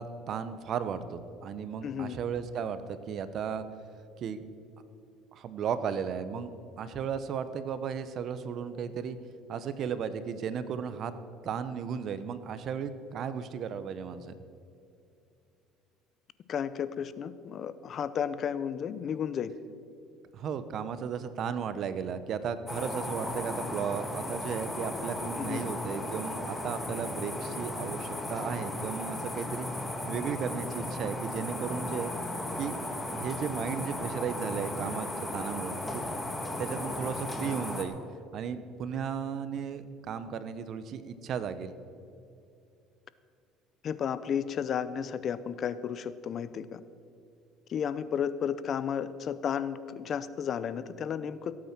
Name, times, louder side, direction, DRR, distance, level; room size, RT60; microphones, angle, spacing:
voice 1, 0.0-3.6 4.2-4.5 5.3-9.2 9.5-11.1 11.4-14.3 20.3-29.7 30.1-32.1 32.6-32.8 33.1-36.0 36.6-38.0 38.3-41.7, right 7 dB, 55° right, 12 dB, 0.9 m, -35 dB
voice 2, 1.8-2.2 16.5-19.5 25.4-25.6 43.8-46.8 47.7-51.5, left 8 dB, 45° left, 15 dB, 0.6 m, -33 dB
sound 1, 22.7-37.9, left 1 dB, 10° left, 1.8 m, -36 dB
16.5 x 8.7 x 6.0 m, 2.5 s
supercardioid pair, 105°, 0 cm